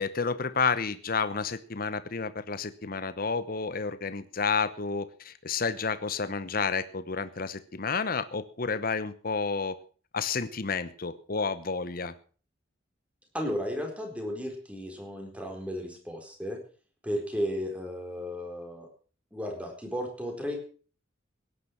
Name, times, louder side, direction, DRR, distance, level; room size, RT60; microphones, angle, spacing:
voice 1, 0.0-9.8 10.1-12.1, left 5 dB, 50° left, 12 dB, 1.0 m, -30 dB
voice 2, 13.3-16.6 17.0-18.9 19.3-20.6, equal, 5° right, 3 dB, 4.3 m, -34 dB
17.5 x 10.5 x 6.0 m, 0.41 s
head